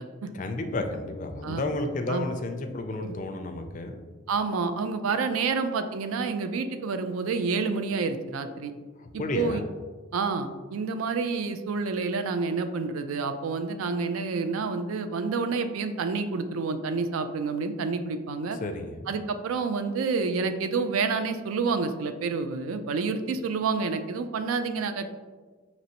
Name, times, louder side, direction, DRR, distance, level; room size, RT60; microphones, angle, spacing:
voice 1, 0.3-4.0 9.0-9.6 18.6-19.1, left 2 dB, 35° left, 5 dB, 0.3 m, -32 dB
voice 2, 4.3-8.7 9.1-9.6 10.1-18.6 19.1-25.1, right 4 dB, 80° right, 9 dB, 0.4 m, -29 dB
5.3 x 3.0 x 2.8 m, 1.4 s
head